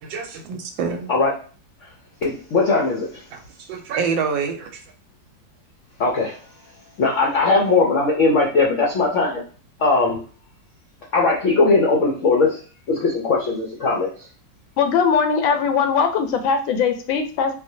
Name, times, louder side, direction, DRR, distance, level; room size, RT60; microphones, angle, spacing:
voice 1, 0.0-1.1 3.3-3.4 3.7-4.8, right 5 dB, 85° right, 1.4 m, -26 dB
voice 2, 2.2-3.1 6.0-6.3 7.0-9.4 9.8-10.2 11.1-12.5 12.9-14.1, left 3 dB, 70° left, 0.7 m, -19 dB
voice 3, 14.8-17.5, left 6 dB, 90° left, 1.4 m, -20 dB
4.4 x 2.0 x 2.7 m
omnidirectional pair, 2.1 m